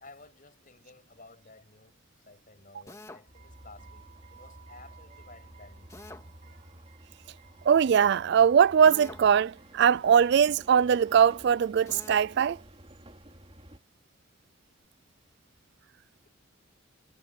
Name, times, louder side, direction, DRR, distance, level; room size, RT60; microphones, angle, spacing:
voice 1, 0.0-2.0 2.2-5.9, left 3 dB, 40° left, 6.6 m, -54 dB
Drill, 2.9-3.3 5.9-6.3 8.8-9.3 11.9-12.3, left 2 dB, 15° left, 2.1 m, -45 dB
sound 1, 3.3-13.8, right 1 dB, 30° right, 2.8 m, -51 dB
voice 2, 7.7-12.6, right 7 dB, 55° right, 0.3 m, -21 dB
head